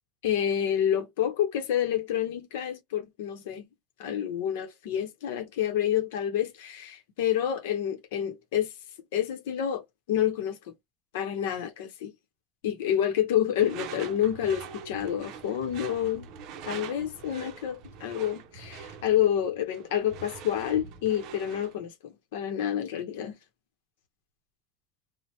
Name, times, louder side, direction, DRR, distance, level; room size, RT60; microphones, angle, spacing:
voice 1, 0.2-3.7 4.0-8.7 9.1-10.6 11.1-12.1 12.6-16.3 16.6-23.3, left 10 dB, 80° left, 0.7 m, -28 dB
Door / Screech, 13.5-21.8, right 6 dB, 50° right, 0.5 m, -43 dB
2.8 x 2.0 x 3.1 m
supercardioid pair, 155°, 0 cm